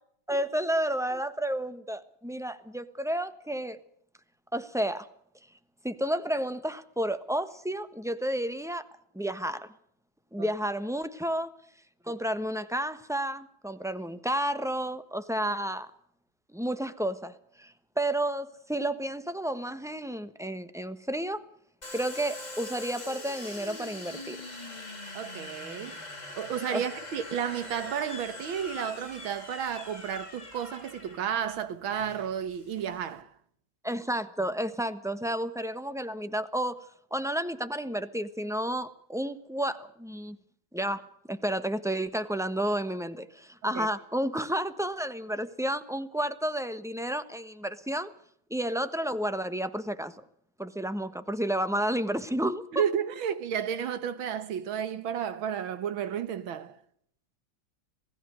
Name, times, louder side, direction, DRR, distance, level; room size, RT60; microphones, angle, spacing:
voice 1, 0.3-3.8 4.5-5.1 5.8-8.9 9.1-9.7 10.3-11.5 12.0-15.9 16.5-21.4 21.9-24.4 26.7-26.9 33.8-36.8 37.1-40.4 40.7-41.0 41.3-48.1 48.5-50.1 50.6-52.8, right 1 dB, ahead, 0.8 m, -31 dB
Domestic sounds home sounds, 21.8-33.2, left 2 dB, 20° left, 3.0 m, -43 dB
voice 2, 25.1-26.0 26.3-33.3 43.6-43.9 52.7-56.8, right 8 dB, 90° right, 2.1 m, -32 dB
27.0 x 17.5 x 6.4 m
omnidirectional pair, 2.1 m